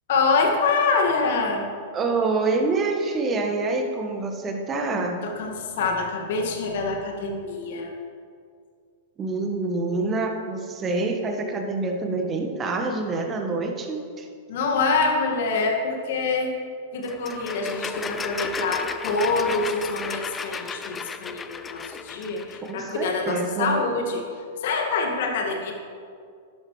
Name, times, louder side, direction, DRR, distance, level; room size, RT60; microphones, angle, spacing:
voice 1, 0.1-1.7 5.2-7.9 14.5-16.5 16.9-24.3 24.6-25.7, left 4 dB, 60° left, 1 dB, 2.0 m, -25 dB
voice 2, 1.9-5.2 9.2-14.3 22.6-23.8, right 3 dB, 25° right, 3 dB, 1.6 m, -26 dB
sound 1, 17.0-22.7, left 5 dB, 20° left, 0.6 m, -34 dB
12.5 x 11.5 x 3.3 m, 2.2 s
hypercardioid pair, 100°, 0 cm